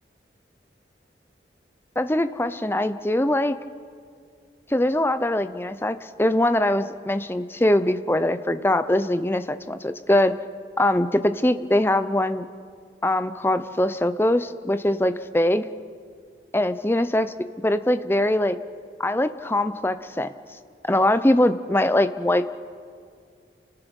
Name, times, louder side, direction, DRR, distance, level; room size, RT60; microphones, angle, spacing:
voice 1, 2.0-3.6 4.7-10.3 10.8-12.5 13.0-15.6 16.5-17.3 17.6-18.6 19.0-20.3 20.9-22.5, left 1 dB, 15° left, 11 dB, 0.6 m, -22 dB
29.0 x 20.0 x 5.4 m, 2.2 s
head